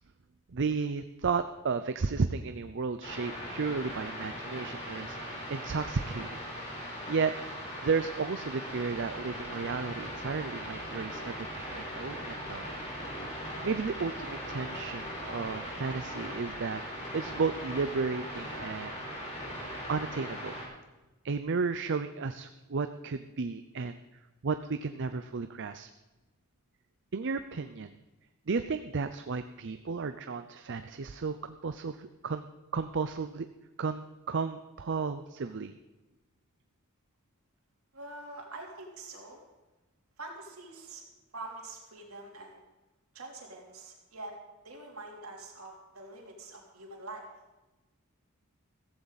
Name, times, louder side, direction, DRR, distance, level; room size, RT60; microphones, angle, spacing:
voice 1, 0.5-6.4 7.1-7.3 7.8-11.4 11.7-12.6 13.6-16.8 17.1-18.9 19.2-19.5 19.9-20.6 21.2-24.0 24.4-25.9 27.1-27.9 28.5-32.4 32.7-33.5 33.8-35.7, right 4 dB, 55° right, 10 dB, 0.6 m, -33 dB
sound 1, 3.0-20.6, equal, 35° left, 5.0 m, -39 dB
voice 2, 37.9-39.4 40.2-41.0 41.3-42.6 43.1-44.3 44.6-47.3, right 2 dB, 75° right, 0 dB, 3.5 m, -45 dB
15.5 x 15.0 x 4.1 m, 1.1 s
head